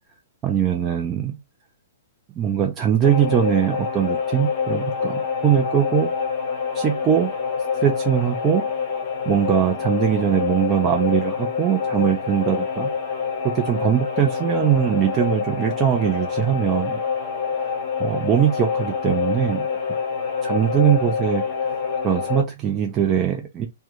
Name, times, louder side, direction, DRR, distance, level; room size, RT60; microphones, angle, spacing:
voice 1, 0.4-1.3 2.4-6.1 6.7-7.3 7.8-8.6 9.3-12.9 13.5-17.0 18.0-19.6 20.4-21.4 22.0-23.7, right 9 dB, 25° right, 0.4 m, -21 dB
sound 1, 3.0-22.4, left 6 dB, 35° left, 0.8 m, -26 dB
2.2 x 2.1 x 2.8 m
hypercardioid pair, 130°, 0 cm